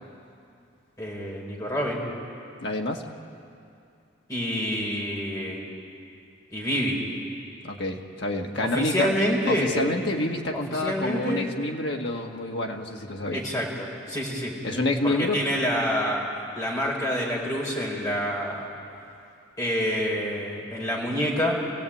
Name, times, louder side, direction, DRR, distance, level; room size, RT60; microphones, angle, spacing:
voice 1, 1.0-2.0 4.3-5.6 6.5-7.0 8.6-9.7 10.8-11.4 13.3-14.5 15.0-16.3 16.6-18.7 19.6-21.5, equal, 20° left, -3 dB, 4.4 m, -27 dB
voice 2, 2.6-3.0 7.6-9.1 9.5-13.4 14.6-15.4, left 1 dB, 65° left, 1 dB, 2.0 m, -28 dB
27.5 x 17.0 x 8.8 m, 2.5 s
head